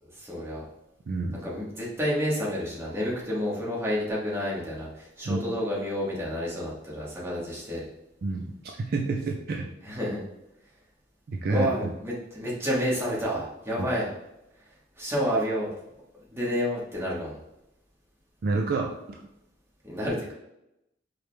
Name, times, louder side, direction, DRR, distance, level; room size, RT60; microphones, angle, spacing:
voice 1, 0.0-0.6 1.4-7.8 9.8-10.2 11.5-14.1 15.0-15.7 16.3-17.4 19.8-20.3, equal, 15° right, -6 dB, 1.1 m, -29 dB
voice 2, 1.1-1.4 5.2-5.4 8.2-8.5 8.8-9.7 11.3-11.7 13.8-13.9 18.4-19.2, right 3 dB, 55° right, 1 dB, 0.4 m, -28 dB
4.9 x 2.1 x 3.1 m, 0.85 s
head